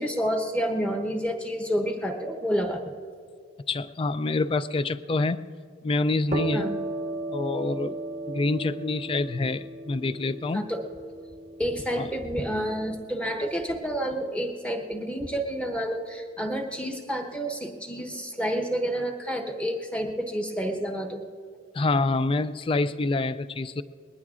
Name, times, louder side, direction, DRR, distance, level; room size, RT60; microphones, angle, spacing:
voice 1, 0.0-2.9 6.5-6.8 10.5-10.8 11.6-21.2, equal, 5° left, 4 dB, 1.0 m, -29 dB
voice 2, 3.7-5.4 5.8-6.7 7.3-8.0 8.3-10.7 12.0-12.1 21.7-23.8, left 3 dB, 30° left, 15 dB, 0.3 m, -26 dB
sound 1, 6.3-13.8, right 2 dB, 35° right, 0.6 m, -36 dB
21.5 x 20.0 x 2.5 m, 2.2 s
head